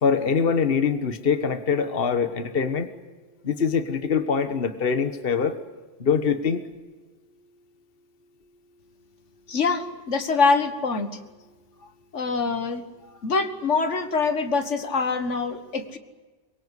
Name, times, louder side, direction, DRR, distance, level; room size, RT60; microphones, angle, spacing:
voice 1, 0.0-2.9 3.4-5.6 6.0-6.6, left 6 dB, 50° left, 10 dB, 1.5 m, -23 dB
voice 2, 9.5-11.1 12.1-16.0, left 4 dB, 70° left, 10 dB, 1.8 m, -24 dB
24.0 x 22.5 x 8.2 m, 1.3 s
omnidirectional pair, 1.3 m